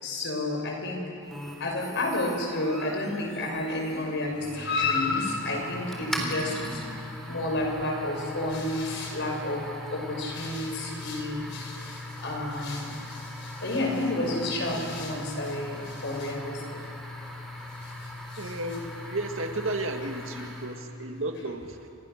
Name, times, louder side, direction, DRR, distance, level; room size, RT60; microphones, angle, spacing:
voice 1, 0.0-1.0 1.6-6.8 7.3-9.6 9.9-16.8 17.8-17.9 18.3-18.4, left 2 dB, 60° left, 1 dB, 6.0 m, -30 dB
sound 1, 1.3-20.9, left 1 dB, ahead, 3.6 m, -39 dB
voice 2, 18.4-21.9, right 2 dB, 70° right, 4 dB, 2.2 m, -33 dB
30.0 x 27.0 x 6.7 m, 2.7 s
head